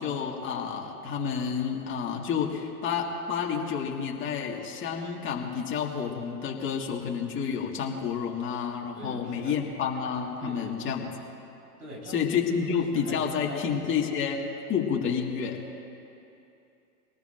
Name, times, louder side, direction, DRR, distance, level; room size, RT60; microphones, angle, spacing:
voice 1, 0.0-11.1 12.1-15.6, left 7 dB, 25° left, 0 dB, 2.0 m, -30 dB
voice 2, 8.9-9.9 10.4-11.0 11.8-12.4 12.7-14.2, right 1 dB, 75° right, -2 dB, 4.5 m, -44 dB
25.5 x 18.5 x 2.6 m, 2.7 s
hypercardioid pair, 115°, 48 cm